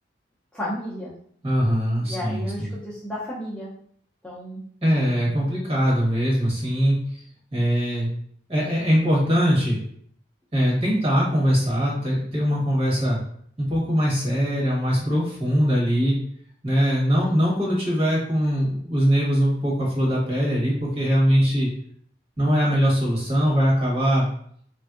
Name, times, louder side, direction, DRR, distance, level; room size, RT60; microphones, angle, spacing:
voice 1, 0.5-1.1 2.0-3.7 4.2-4.6, equal, 5° left, -8 dB, 0.5 m, -33 dB
voice 2, 1.4-2.7 4.8-7.0 7.5-8.1 8.5-9.8 10.5-13.2 13.6-16.1 16.6-21.7 22.4-24.3, equal, 35° right, -5 dB, 1.2 m, -21 dB
3.2 x 2.5 x 2.4 m, 0.62 s
head